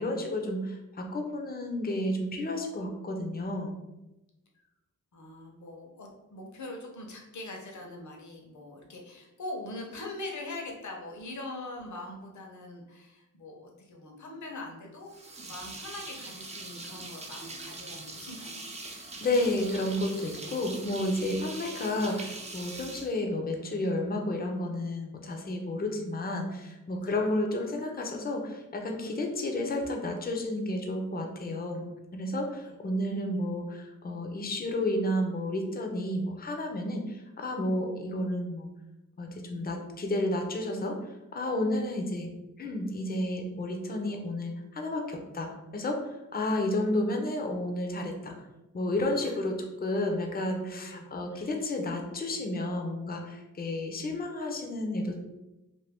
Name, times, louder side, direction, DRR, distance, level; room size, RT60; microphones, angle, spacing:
voice 1, 0.0-3.8 18.8-31.8 32.1-38.7 39.2-41.0 41.3-42.3 42.6-48.3 48.7-55.2, left 1 dB, 30° left, 2 dB, 0.6 m, -31 dB
voice 2, 5.1-15.1 15.5-18.6 21.3-21.5 27.0-27.2 32.6-32.7 49.2-49.3 50.8-51.0 51.3-51.6, left 2 dB, 60° left, 0 dB, 0.9 m, -42 dB
sound 1, 15.1-23.9, right 2 dB, 20° right, 0.5 m, -42 dB
2.6 x 2.6 x 3.4 m, 0.99 s
cardioid pair, 65°, 32 cm